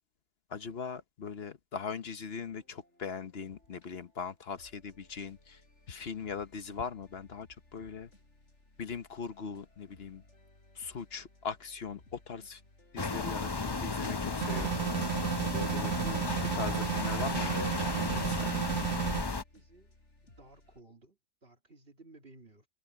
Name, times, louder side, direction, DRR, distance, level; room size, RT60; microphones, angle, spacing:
voice 1, 0.5-5.6 5.9-7.5 7.7-8.1 8.8-10.2 10.7-12.6 12.9-14.7 15.5-16.2 16.5-17.8 18.1-18.5, left 6 dB, 60° left, 1.2 m, -40 dB
sound 1, 2.4-20.8, left 2 dB, 85° left, 5.2 m, -61 dB
sound 2, 13.0-19.4, left 3 dB, 25° left, 0.7 m, -34 dB
sound 3, 14.4-19.3, right 16 dB, 85° right, 1.2 m, -33 dB
voice 2, 18.6-19.9 20.2-22.7, right 2 dB, 55° right, 2.9 m, -58 dB
omnidirectional pair, 1.2 m